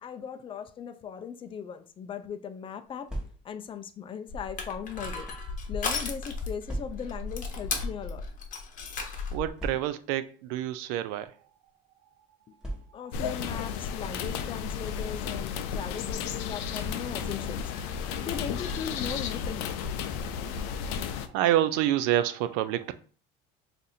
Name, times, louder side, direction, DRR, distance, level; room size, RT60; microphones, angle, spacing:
voice 1, 0.0-3.1 3.4-5.3 5.7-8.3 12.9-17.7 18.2-19.8, left 7 dB, 25° left, 0.4 m, -38 dB
sound 1, 2.9-3.7 4.5-5.5 6.6-7.3 8.1-8.3 8.6-8.7 9.6-10.2 11.1-11.3 12.6-13.2, right 1 dB, 5° right, 0.9 m, -39 dB
Crushing, 4.3-9.5, left 4 dB, 40° left, 0.8 m, -35 dB
voice 2, 9.3-11.3 20.5-20.6 21.0-22.9, right 12 dB, 85° right, 0.4 m, -28 dB
sound 2, 13.1-21.3, left 7 dB, 85° left, 0.4 m, -33 dB
2.6 x 2.5 x 4.1 m
supercardioid pair, 105°, 20 cm